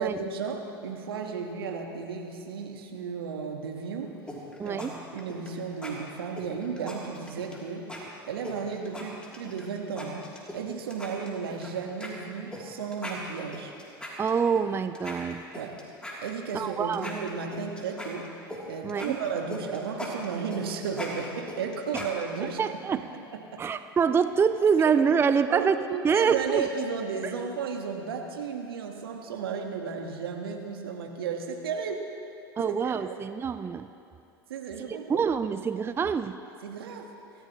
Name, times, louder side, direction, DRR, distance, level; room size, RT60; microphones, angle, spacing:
voice 1, 0.0-4.1 4.6-4.8 5.1-7.9 8.3-10.3 10.5-13.7 15.5-15.8 16.2-18.3 18.7-22.6 22.9-23.2 23.5-23.6 24.8-24.9 25.5-32.1 32.6-33.2 34.5-35.3 36.6-37.1, right 6 dB, 75° right, 3 dB, 1.6 m, -34 dB
sound 1, 4.3-4.9 5.2-5.5 5.8-5.9 6.4-7.6 7.9-8.0 8.4-9.6 10.0-10.6 10.9-11.7 12.0-12.1 12.5-12.6 12.9-14.6 14.9-16.6 16.9-18.6 18.9-22.5, left 1 dB, 10° left, 3.2 m, -39 dB
voice 2, 4.6-4.9 14.2-15.4 16.5-17.1 18.8-19.2 22.6-23.0 23.6-25.8 26.0-26.6 32.6-33.9 34.9-36.4, right 6 dB, 20° right, 11 dB, 0.5 m, -25 dB
23.5 x 15.0 x 3.1 m, 2.5 s
figure-of-eight pair, 80°, 13 cm